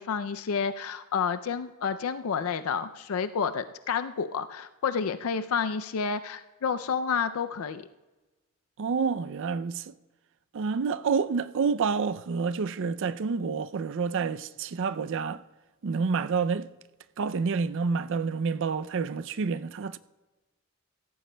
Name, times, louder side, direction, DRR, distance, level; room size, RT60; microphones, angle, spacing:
voice 1, 0.0-7.8, left 6 dB, 80° left, 0.4 m, -30 dB
voice 2, 8.8-9.9 10.5-15.4 15.8-16.7 17.2-20.0, right 5 dB, 60° right, 0.4 m, -28 dB
16.5 x 14.0 x 2.2 m
head